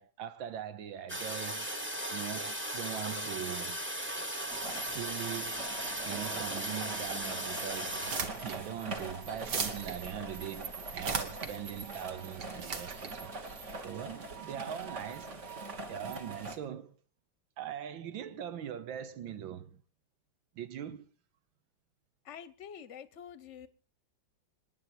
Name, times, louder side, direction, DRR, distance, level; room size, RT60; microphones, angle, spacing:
voice 1, 0.0-1.8 2.1-3.8 4.9-5.7 6.0-8.1 8.3-13.3 13.8-15.5 15.9-16.9 17.6-19.8 20.6-21.1, right 9 dB, 90° right, 1.8 m, -41 dB
Toilet flush, 1.1-8.2, equal, 10° right, 0.9 m, -37 dB
sound 1, 4.5-16.6, right 3 dB, 40° right, 1.8 m, -42 dB
sound 2, 7.9-14.3, right 5 dB, 60° right, 2.1 m, -39 dB
voice 2, 22.2-23.7, left 8 dB, 45° left, 1.1 m, -47 dB
26.5 x 10.0 x 4.4 m
omnidirectional pair, 2.0 m